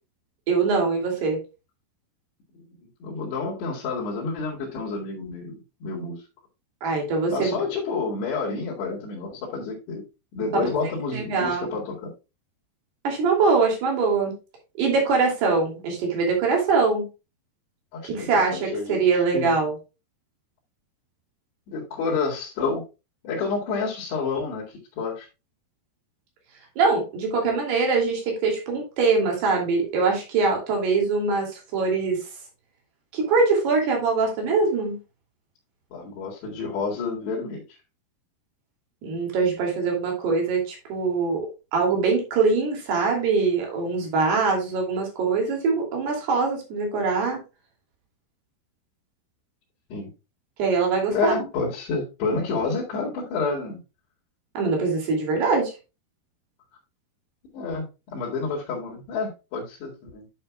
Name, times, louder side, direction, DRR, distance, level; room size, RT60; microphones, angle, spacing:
voice 1, 0.5-1.4 6.8-7.6 10.6-10.7 11.1-11.7 13.0-14.3 14.8-17.0 18.0-19.7 26.8-32.2 33.1-35.0 39.0-47.4 50.6-51.3 54.5-55.7, right 4 dB, 75° right, 1 dB, 4.8 m, -23 dB
voice 2, 2.5-6.2 7.3-10.0 10.3-12.1 17.9-19.0 19.3-19.6 21.7-22.8 23.2-25.3 35.9-37.6 49.9-50.1 51.1-53.8 57.5-60.3, left 4 dB, 80° left, -4 dB, 4.4 m, -29 dB
11.0 x 7.3 x 2.3 m, 0.28 s
omnidirectional pair, 4.7 m